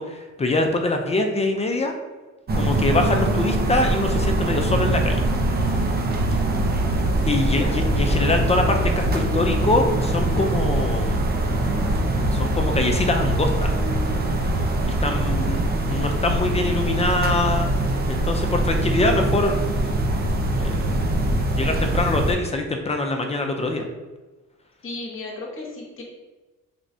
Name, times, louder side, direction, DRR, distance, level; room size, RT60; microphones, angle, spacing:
voice 1, 0.0-1.9 2.5-5.2 7.2-11.2 12.3-13.7 14.8-17.7 18.1-19.7 20.6-20.9 21.5-23.8, left 2 dB, 20° left, 4 dB, 0.4 m, -24 dB
sound 1, 2.5-22.3, right 1 dB, 30° right, 0.5 m, -22 dB
voice 2, 6.7-8.4 24.8-26.0, left 2 dB, 45° left, -1 dB, 0.9 m, -36 dB
3.4 x 3.0 x 2.6 m, 1.2 s
cardioid pair, 90°, 30 cm